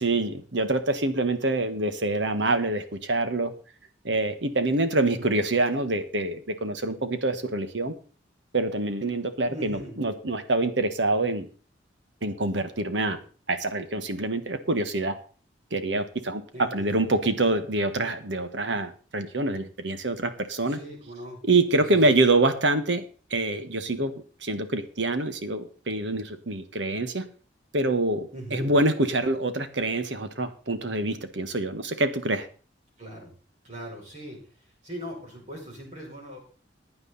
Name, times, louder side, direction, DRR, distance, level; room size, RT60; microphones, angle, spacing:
voice 1, 0.0-3.5 4.0-7.9 8.5-11.5 12.2-13.2 13.5-15.1 15.7-16.4 16.7-20.8 21.5-23.0 23.3-24.1 24.4-27.2 27.7-32.5, right 2 dB, 75° right, 9 dB, 1.5 m, -26 dB
voice 2, 9.5-10.0 16.5-17.1 20.6-21.4 21.8-22.2 28.3-28.7 33.0-33.3 33.6-36.4, equal, 40° right, -2 dB, 6.4 m, -40 dB
15.5 x 9.6 x 4.1 m, 0.38 s
head